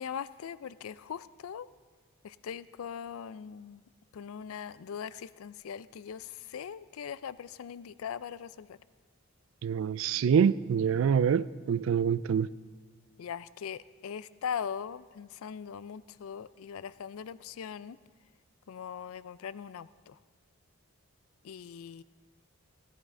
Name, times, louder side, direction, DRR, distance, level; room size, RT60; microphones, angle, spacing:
voice 1, 0.0-1.7 2.2-3.8 4.1-8.8 13.2-18.0 18.7-20.2 21.4-22.0, left 7 dB, 75° left, 17 dB, 0.4 m, -40 dB
voice 2, 9.6-12.5, right 7 dB, 65° right, 18 dB, 0.3 m, -26 dB
16.0 x 11.0 x 3.7 m, 1.5 s
head